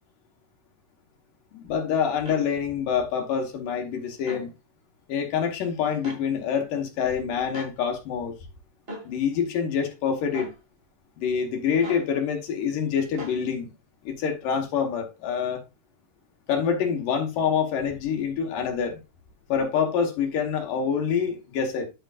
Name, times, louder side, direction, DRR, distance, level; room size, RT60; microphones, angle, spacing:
voice 1, 1.5-4.5 5.1-8.4 9.0-10.5 11.2-13.7 14.0-15.6 16.5-19.0 19.5-21.9, left 7 dB, 75° left, 2.8 m, -26 dB
sound 1, 2.3-2.4 4.2-4.5 6.0-6.2 7.5-7.7 8.9-9.1 10.3-10.6 11.8-12.1 13.2-13.4, equal, 25° right, 1.3 m, -37 dB
11.5 x 6.0 x 2.4 m
omnidirectional pair, 3.9 m